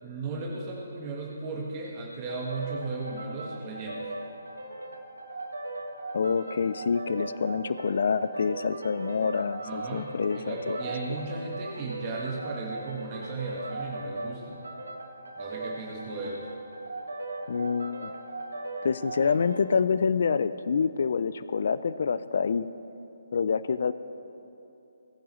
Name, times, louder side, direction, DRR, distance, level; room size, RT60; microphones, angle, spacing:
voice 1, 0.0-4.1 9.6-10.1 10.3-14.6 15.4-16.5, right 3 dB, 25° right, -3 dB, 1.5 m, -36 dB
sound 1, 2.3-19.7, right 2 dB, 85° right, 1.6 m, -38 dB
voice 2, 6.1-10.8 17.5-18.1 18.8-22.7 23.3-23.9, left 5 dB, 60° left, 14 dB, 0.3 m, -27 dB
19.0 x 10.0 x 3.1 m, 2.9 s
figure-of-eight pair, 150°, 0 cm